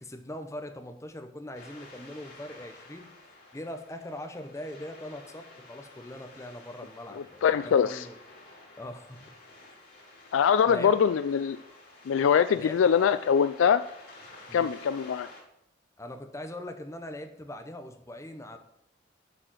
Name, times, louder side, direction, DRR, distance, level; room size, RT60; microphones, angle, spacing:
voice 1, 0.0-3.1 3.5-8.2 8.8-9.3 10.7-10.9 12.5-12.8 14.5-14.7 16.0-18.6, left 1 dB, 15° left, 6 dB, 0.9 m, -41 dB
sound 1, 1.5-15.4, left 2 dB, 55° left, 3.7 m, -51 dB
voice 2, 7.2-8.1 10.3-11.6 12.1-13.8 14.5-15.3, left 7 dB, 80° left, 12 dB, 0.3 m, -23 dB
8.4 x 4.9 x 7.6 m, 0.77 s
head